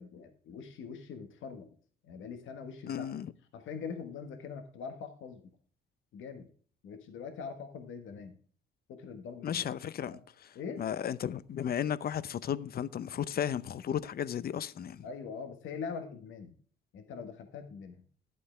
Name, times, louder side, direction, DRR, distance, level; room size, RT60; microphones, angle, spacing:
voice 1, 0.0-1.7 2.0-3.1 3.5-5.4 6.1-6.5 6.8-8.3 8.9-9.8 10.1-10.2 10.5-10.8 15.0-16.6 16.9-18.0, left 6 dB, 80° left, 1.5 m, -43 dB
voice 2, 2.9-3.3 9.4-15.1, left 9 dB, 50° left, 0.7 m, -34 dB
11.5 x 8.4 x 3.3 m
cardioid pair, 90°, 20 cm